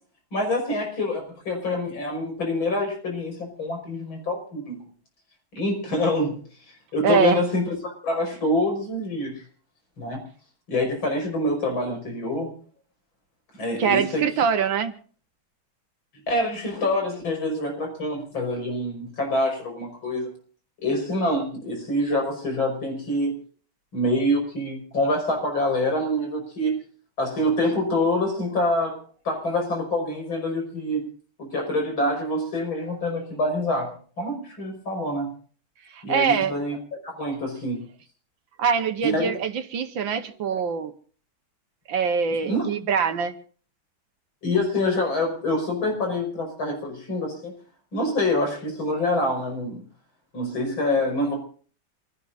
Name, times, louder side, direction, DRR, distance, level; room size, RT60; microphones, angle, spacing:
voice 1, 0.3-4.8 5.6-6.4 6.9-9.4 10.0-10.3 10.7-12.5 13.5-14.2 16.3-20.3 20.8-23.4 23.9-26.8 27.2-29.0 29.2-31.1 31.4-35.3 36.0-37.8 39.0-39.3 42.5-42.7 44.4-47.5 47.9-49.8 50.3-51.4, left 1 dB, 90° left, 2 dB, 6.2 m, -26 dB
voice 2, 7.0-7.4 13.8-14.9 35.9-36.6 38.6-40.9 41.9-43.3, right 6 dB, 75° right, 8 dB, 2.0 m, -23 dB
27.5 x 16.5 x 2.6 m, 0.42 s
omnidirectional pair, 2.1 m